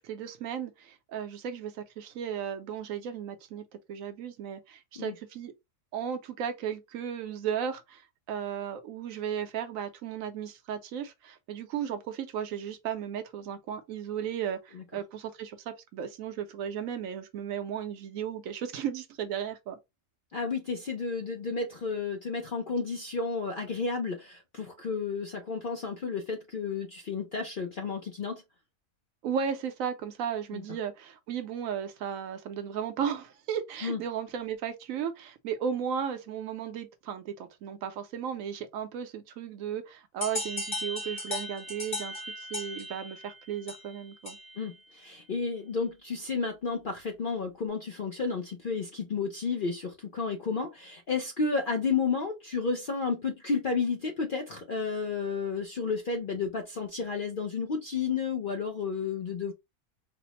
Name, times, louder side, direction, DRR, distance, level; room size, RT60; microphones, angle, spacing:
voice 1, 0.0-5.5 5.9-8.0 8.3-19.8 29.2-44.4, right 8 dB, 70° right, 1.0 m, -35 dB
voice 2, 20.3-28.4 30.5-30.6 33.8-34.0 44.6-59.5, left 4 dB, 60° left, 0.5 m, -32 dB
sound 1, 40.2-44.7, left 1 dB, 25° left, 0.8 m, -37 dB
4.1 x 2.0 x 2.9 m
omnidirectional pair, 1.6 m